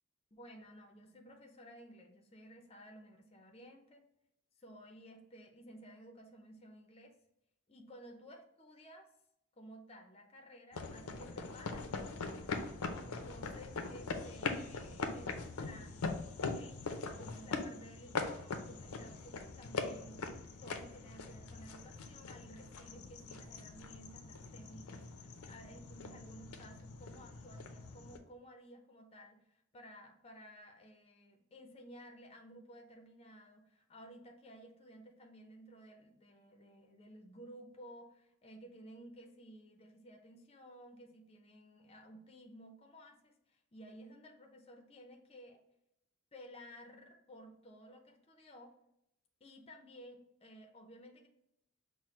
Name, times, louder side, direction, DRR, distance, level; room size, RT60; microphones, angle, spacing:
voice 1, 0.3-4.0 4.6-7.1 7.7-9.1 9.6-12.6 13.0-16.8 17.2-20.2 20.6-45.6 46.3-48.8 49.4-51.3, equal, 25° left, 3 dB, 0.5 m, -55 dB
sound 1, 10.7-28.2, left 4 dB, 90° left, 0.5 m, -42 dB
5.8 x 2.1 x 3.1 m, 0.79 s
head